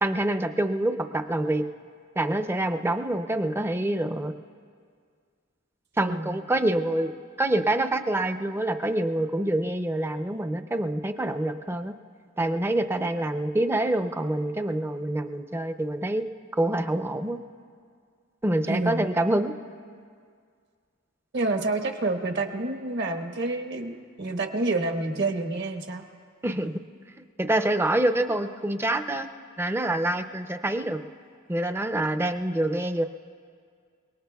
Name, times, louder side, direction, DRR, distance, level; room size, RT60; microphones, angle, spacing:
voice 1, 0.0-1.6 2.2-4.3 6.0-7.1 7.4-11.9 12.4-16.2 16.6-17.4 18.4-19.5 26.4-26.7 27.4-29.3 29.6-31.0 31.5-33.0, right 1 dB, 10° right, 8 dB, 0.5 m, -26 dB
voice 2, 6.0-6.3 18.7-19.1 21.3-26.0, right 2 dB, 55° right, 4 dB, 1.2 m, -28 dB
29.5 x 19.0 x 2.3 m, 2.1 s
head